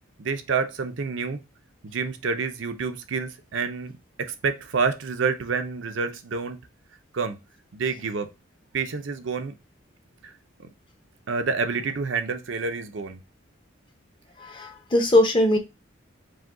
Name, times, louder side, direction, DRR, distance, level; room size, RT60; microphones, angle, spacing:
voice 1, 0.2-1.4 1.8-6.6 7.1-7.4 7.7-8.3 8.7-9.5 10.2-10.3 10.6-10.7 11.3-13.2, right 5 dB, 65° right, 0.5 m, -28 dB
voice 2, 14.4-15.6, left 1 dB, 25° left, 0.6 m, -20 dB
4.9 x 2.2 x 3.6 m
head